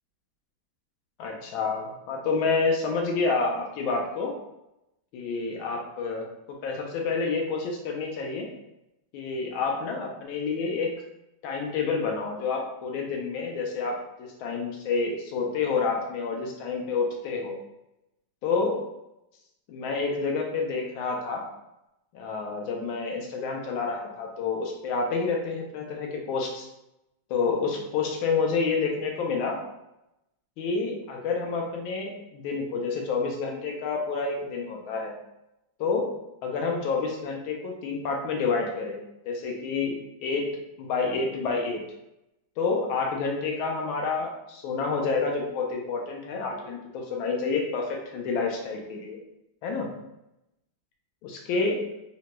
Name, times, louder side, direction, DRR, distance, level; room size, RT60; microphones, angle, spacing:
voice 1, 1.2-4.3 5.1-6.3 6.6-8.5 9.1-10.9 11.4-17.6 18.4-18.8 19.7-21.4 22.1-26.7 27.3-29.6 30.6-35.1 35.8-36.1 36.4-39.0 39.3-39.9 40.2-40.5 40.8-41.8 42.6-49.2 49.6-49.9 51.2-51.8, left 4 dB, 85° left, 1 dB, 1.4 m, -28 dB
3.7 x 2.1 x 2.9 m, 0.87 s
omnidirectional pair, 2.2 m